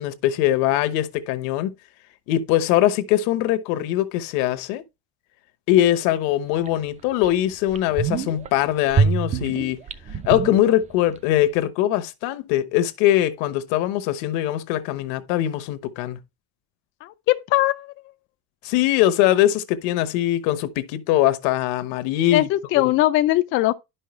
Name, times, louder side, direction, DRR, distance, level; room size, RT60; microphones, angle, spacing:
voice 1, 0.0-1.7 2.3-4.8 5.7-9.8 10.2-16.2 18.6-22.5 22.7-22.9, left 13 dB, 80° left, 1.0 m, -21 dB
sound 1, 6.7-6.8 7.2-7.3 7.7-8.5 8.9-11.2 11.4-11.5, right 5 dB, 25° right, 0.5 m, -24 dB
voice 2, 17.0-17.9 22.3-23.7, left 16 dB, 45° left, 0.4 m, -20 dB
11.0 x 5.5 x 3.1 m
cardioid pair, 165°, 29 cm